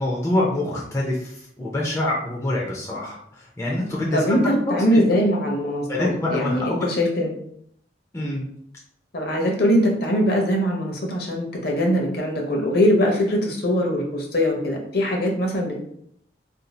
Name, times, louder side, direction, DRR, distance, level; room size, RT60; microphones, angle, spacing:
voice 1, 0.0-5.0 5.9-7.0 8.1-8.4, left 1 dB, 15° left, -4 dB, 0.5 m, -26 dB
voice 2, 4.1-7.3 8.2-8.4 9.1-15.8, equal, 55° left, 0 dB, 0.8 m, -22 dB
2.6 x 2.3 x 4.1 m, 0.68 s
head